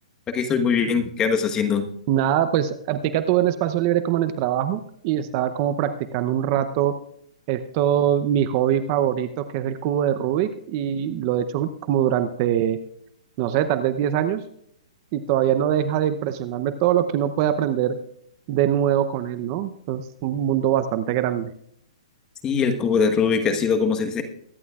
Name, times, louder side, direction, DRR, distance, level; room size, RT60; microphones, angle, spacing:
voice 1, 0.3-1.9 22.4-24.2, left 6 dB, 15° left, 6 dB, 1.2 m, -22 dB
voice 2, 2.1-6.9 7.5-12.8 13.4-14.4 15.1-18.0 18.5-21.5, right 10 dB, 35° right, 11 dB, 0.7 m, -23 dB
23.0 x 11.0 x 2.4 m, 0.71 s
hypercardioid pair, 150°, 4 cm